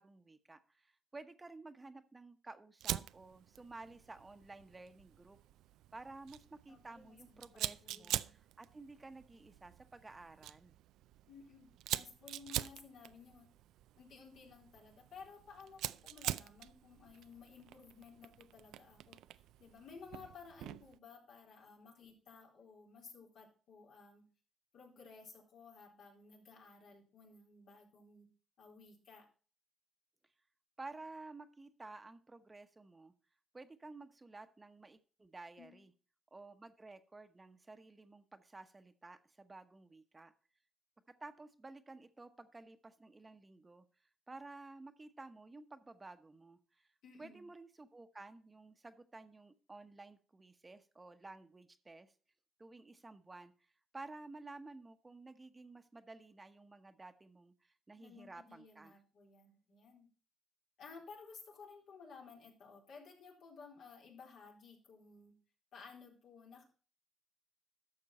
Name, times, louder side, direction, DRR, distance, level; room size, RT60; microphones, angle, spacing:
voice 1, 0.0-5.4 5.9-10.7 30.8-33.1 33.5-35.9 36.3-40.3 41.2-43.8 44.3-46.9 47.2-52.1 52.6-53.7 53.9-59.0, right 3 dB, 20° right, 9 dB, 1.0 m, -53 dB
Fire, 2.8-21.0, right 13 dB, 90° right, 0.4 m, -45 dB
voice 2, 6.7-8.3 11.3-13.5 14.0-19.2 19.6-24.2 24.7-28.3 28.6-29.3 35.6-35.8 47.0-47.5 57.9-60.1 60.8-65.3 65.7-66.6, left 5 dB, 75° left, -1 dB, 3.9 m, -56 dB
12.0 x 6.7 x 4.2 m, 0.39 s
cardioid pair, 90°, 0 cm